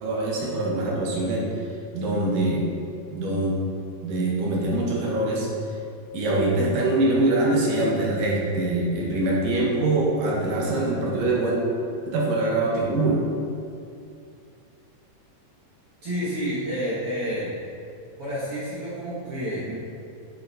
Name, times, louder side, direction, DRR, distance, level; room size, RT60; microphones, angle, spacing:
voice 1, 0.0-1.4 1.9-2.6 3.1-3.5 4.0-5.5 6.1-11.6 12.0-13.2, right 2 dB, 80° right, -4 dB, 3.1 m, -23 dB
voice 2, 16.0-17.5 18.2-19.7, equal, 55° right, -9 dB, 2.0 m, -29 dB
7.4 x 7.0 x 4.1 m, 2.4 s
omnidirectional pair, 3.8 m